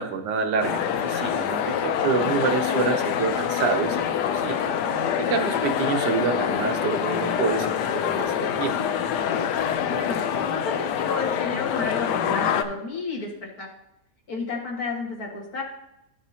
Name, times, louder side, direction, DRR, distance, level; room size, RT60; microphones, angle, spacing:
voice 1, 0.0-4.6 5.2-8.8, right 5 dB, 85° right, 6 dB, 1.5 m, -27 dB
sound 1, 0.6-12.6, left 8 dB, 85° left, 1.2 m, -25 dB
voice 2, 9.8-13.7 14.3-15.6, left 3 dB, 65° left, -2 dB, 2.3 m, -32 dB
12.5 x 5.9 x 2.8 m, 0.83 s
omnidirectional pair, 1.8 m